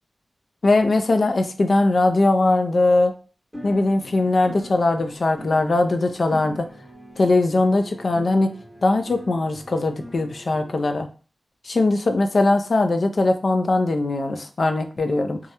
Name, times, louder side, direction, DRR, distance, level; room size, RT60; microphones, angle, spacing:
voice 1, 0.6-3.1 3.6-6.7 7.2-8.5 8.8-11.1 11.6-15.4, left 2 dB, 60° left, 6 dB, 0.3 m, -20 dB
sound 1, 3.5-10.9, equal, 5° right, 0.6 m, -42 dB
2.3 x 2.0 x 2.8 m, 0.38 s
wide cardioid pair, 65°, 0 cm